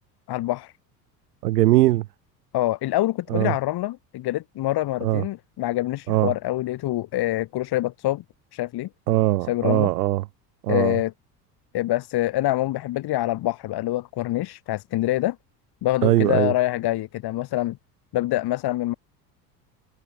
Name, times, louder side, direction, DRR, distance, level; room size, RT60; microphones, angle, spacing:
voice 1, 0.3-0.7 2.5-8.2 8.5-8.9 9.5-9.9 10.7-11.1 11.7-15.4 15.8-17.8 18.1-19.0, left 15 dB, 50° left, 5.9 m, -25 dB
voice 2, 1.4-2.0 3.3-3.5 5.0-5.2 6.1-6.3 9.1-10.2 10.6-11.0 16.0-16.5, right 16 dB, 75° right, 2.1 m, -20 dB
hypercardioid pair, 70°, 48 cm